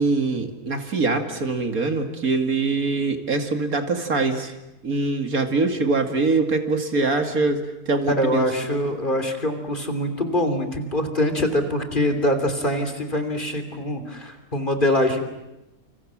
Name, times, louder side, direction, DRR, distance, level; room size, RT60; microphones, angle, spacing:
voice 1, 0.0-4.5 4.8-7.6 7.9-8.8, right 3 dB, 70° right, 6 dB, 2.8 m, -23 dB
voice 2, 8.1-15.2, left 1 dB, 35° left, 8 dB, 3.2 m, -24 dB
29.0 x 26.5 x 7.5 m, 0.93 s
omnidirectional pair, 1.6 m